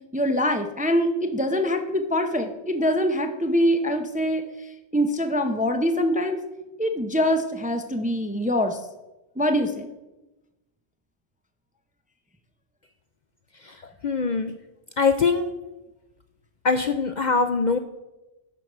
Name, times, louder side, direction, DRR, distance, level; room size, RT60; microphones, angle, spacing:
voice 1, 0.1-4.4 4.9-6.4 6.8-8.8 9.4-9.9, equal, 10° right, 6 dB, 0.5 m, -24 dB
voice 2, 13.6-14.5 15.0-15.5 16.6-17.8, left 4 dB, 50° left, 8 dB, 0.6 m, -23 dB
11.5 x 4.7 x 6.6 m, 1.0 s
omnidirectional pair, 1.2 m